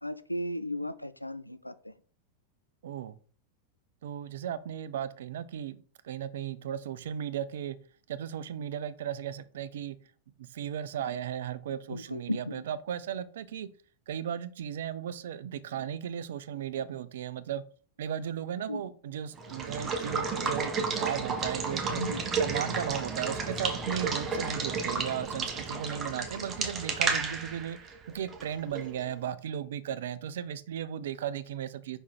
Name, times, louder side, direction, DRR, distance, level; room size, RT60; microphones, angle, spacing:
voice 1, 0.0-1.9 11.9-12.6 18.7-18.8 22.0-22.2, left 1 dB, 85° left, 0.4 m, -35 dB
voice 2, 2.8-3.2 4.0-5.8 6.0-7.8 8.1-10.0 10.4-13.7 14.1-17.6 18.0-22.0 22.3-32.0, right 9 dB, 60° right, 0.5 m, -36 dB
Water / Water tap faucet / Liquid, 19.4-29.0, right 4 dB, 20° right, 1.3 m, -32 dB
5.4 x 4.7 x 4.5 m
figure-of-eight pair, 90°, 0 cm